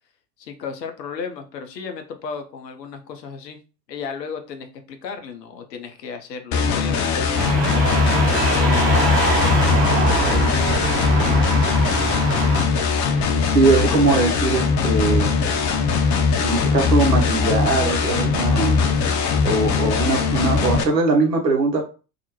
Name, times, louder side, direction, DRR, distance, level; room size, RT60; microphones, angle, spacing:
voice 1, 0.4-3.6 3.9-8.0 8.6-11.1, left 6 dB, 80° left, 6 dB, 0.6 m, -34 dB
sound 1, 6.5-20.8, left 5 dB, 40° left, 0.6 m, -20 dB
sound 2, 7.4-12.7, right 2 dB, 30° right, 0.9 m, -23 dB
voice 2, 13.5-15.3 16.4-18.8 19.4-21.8, right 3 dB, 90° right, 1 dB, 0.8 m, -20 dB
2.4 x 2.0 x 2.9 m, 0.33 s
figure-of-eight pair, 70°, 49 cm